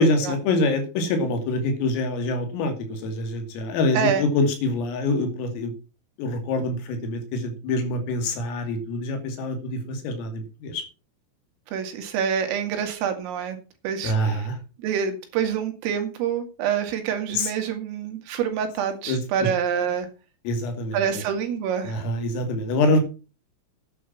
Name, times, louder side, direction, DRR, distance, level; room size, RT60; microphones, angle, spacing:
voice 1, 0.0-5.7 6.2-10.8 14.0-14.6 17.3-17.5 19.1-19.2 20.4-21.2 21.8-23.0, left 2 dB, 85° left, 7 dB, 5.1 m, -25 dB
voice 2, 3.9-4.3 11.7-13.6 13.8-14.5 14.8-20.1 20.9-22.0, right 8 dB, 80° right, 5 dB, 4.9 m, -26 dB
11.0 x 9.7 x 5.8 m, 0.32 s
omnidirectional pair, 5.9 m